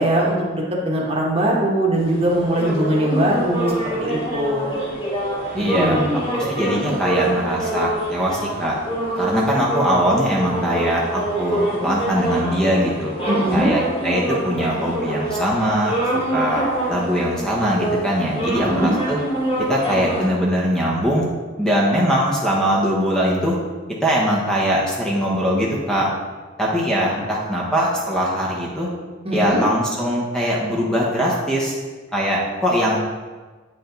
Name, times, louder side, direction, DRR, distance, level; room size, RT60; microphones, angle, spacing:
voice 1, 0.0-4.7 5.5-6.2 13.3-13.7 18.6-18.9 29.2-29.7, right 1 dB, 30° right, -2 dB, 1.3 m, -21 dB
sound 1, 1.9-20.3, right 1 dB, 30° left, 2.1 m, -26 dB
voice 2, 5.5-6.0 6.3-8.8 9.2-13.1 13.5-16.0 16.3-16.6 16.9-19.2 19.7-21.2 21.6-23.5 24.0-26.1 26.6-28.9 29.3-31.8 32.1-33.0, equal, 5° left, -4 dB, 1.1 m, -21 dB
8.6 x 5.1 x 3.9 m, 1.3 s
head